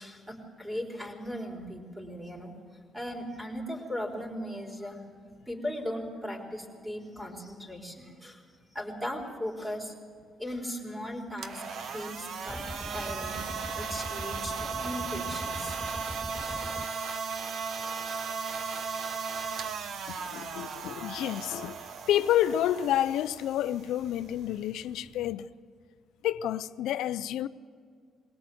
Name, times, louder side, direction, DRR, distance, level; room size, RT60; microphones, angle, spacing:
voice 1, 0.0-2.6 2.9-5.0 5.5-8.4 8.7-9.9 10.4-15.8, equal, 15° right, 4.1 m, -38 dB
sound 1, 11.3-25.3, right 5 dB, 65° right, 1.1 m, -37 dB
sound 2, 12.5-16.9, left 1 dB, 5° left, 0.5 m, -42 dB
voice 2, 20.1-21.8 22.1-25.5 26.2-27.5, left 12 dB, 85° left, 0.5 m, -29 dB
21.5 x 18.0 x 7.8 m
cardioid pair, 90°, 0 cm